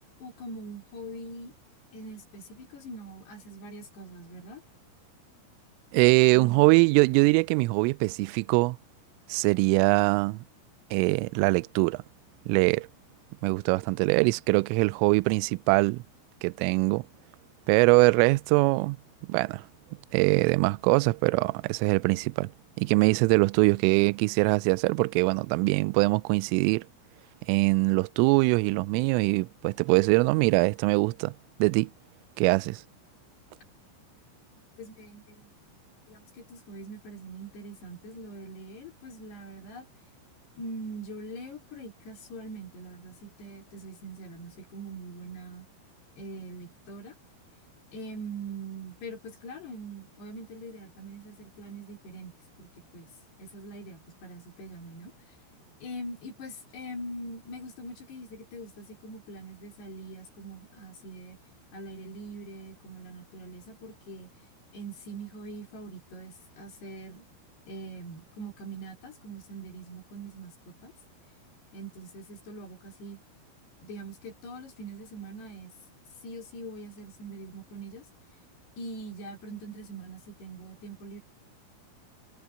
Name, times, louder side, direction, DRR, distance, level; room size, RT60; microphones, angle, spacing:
voice 1, 0.2-1.5 1.9-4.6 34.8-35.5 36.1-39.9 40.6-45.7 46.2-47.1 47.9-53.1 53.4-55.1 55.8-61.4 61.7-64.3 64.7-67.2 67.7-70.9 71.7-73.2 73.8-75.7 76.2-78.1 78.8-81.2, right 2 dB, 55° left, 5.8 m, -43 dB
voice 2, 5.9-8.8 9.3-10.4 10.9-12.0 12.5-12.9 13.4-16.0 16.4-17.0 17.7-19.0 19.3-19.6 20.1-22.5 22.8-26.8 27.5-31.3 31.6-31.9 32.4-32.8, right 26 dB, 85° right, 3.0 m, -23 dB
omnidirectional pair, 6.0 m